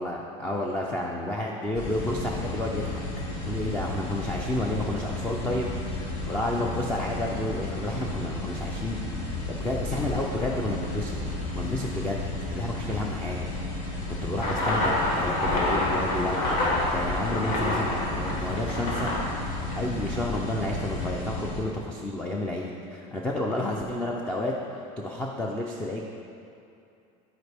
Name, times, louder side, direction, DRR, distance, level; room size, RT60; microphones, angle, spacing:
voice 1, 0.0-3.0 3.4-5.7 6.3-11.2 11.6-12.2 12.5-13.5 14.2-19.1 19.8-26.1, left 1 dB, 5° left, -1 dB, 0.4 m, -31 dB
sound 1, 1.7-21.6, left 2 dB, 45° left, 1.6 m, -33 dB
sound 2, 14.4-20.2, left 1 dB, 85° left, 1.7 m, -28 dB
13.5 x 4.9 x 3.4 m, 2.6 s
cardioid pair, 170°, 18 cm